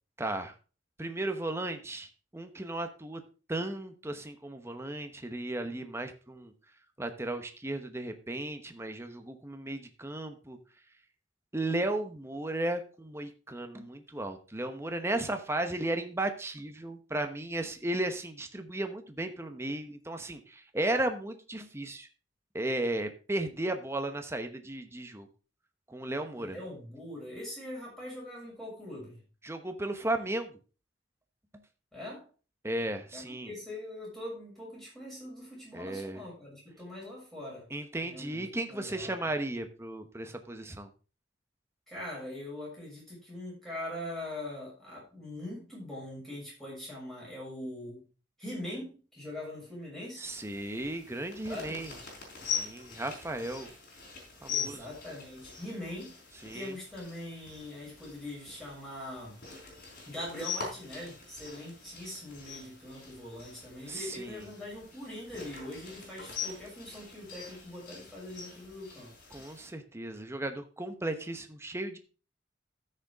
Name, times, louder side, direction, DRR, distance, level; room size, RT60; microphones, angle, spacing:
voice 1, 0.2-0.5 1.0-3.2 3.5-6.5 7.0-10.6 11.5-22.1 22.5-25.3 25.9-26.6 29.4-30.6 32.6-33.5 35.7-36.2 37.7-40.9 50.2-51.9 52.4-53.7 54.4-54.9 56.4-56.7 63.9-64.5 69.3-72.0, right 1 dB, 15° right, 6 dB, 1.0 m, -35 dB
voice 2, 26.3-29.2 31.9-32.2 33.1-37.7 38.0-39.1 41.9-48.0 48.4-50.2 51.5-51.8 54.5-56.2 56.5-59.4 60.0-69.1, left 1 dB, ahead, -5 dB, 6.8 m, -42 dB
sound 1, 50.2-69.7, left 6 dB, 50° left, 4.7 m, -43 dB
14.0 x 6.7 x 3.6 m, 0.36 s
head